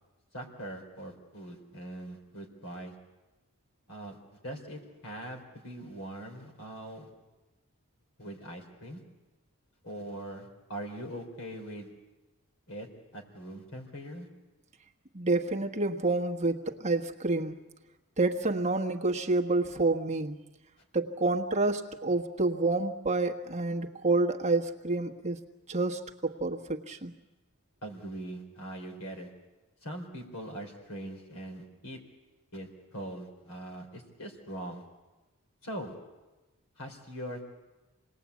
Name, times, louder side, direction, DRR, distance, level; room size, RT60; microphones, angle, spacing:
voice 1, 0.3-2.9 3.9-7.1 8.2-9.0 9.8-11.9 12.7-14.3 27.8-29.3 29.8-32.0 32.5-34.8 35.6-35.9 36.8-37.5, right 1 dB, 65° left, 3 dB, 4.5 m, -42 dB
voice 2, 15.1-17.6 18.2-20.4 20.9-25.4 25.7-27.1, right 2 dB, 30° right, 3 dB, 1.3 m, -28 dB
27.5 x 20.0 x 8.4 m, 1.1 s
head